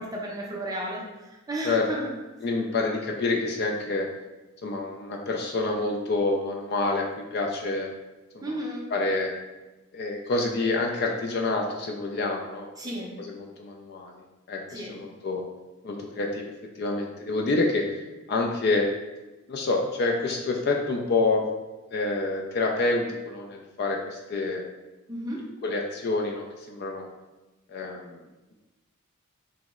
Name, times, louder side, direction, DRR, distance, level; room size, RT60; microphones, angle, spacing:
voice 1, 0.0-2.1 8.4-8.8 12.8-13.1 14.7-15.0 25.1-25.4, right 1 dB, 15° right, -3 dB, 0.5 m, -33 dB
voice 2, 2.4-4.1 4.6-7.9 8.3-8.6 8.9-9.3 9.9-12.7 13.2-14.2 14.5-15.4 15.8-16.5 16.8-17.9 18.3-18.9 19.5-21.4 21.9-24.6 25.6-27.1 27.7-28.2, left 3 dB, 50° left, 1 dB, 0.3 m, -27 dB
2.9 x 2.0 x 3.5 m, 1.1 s
head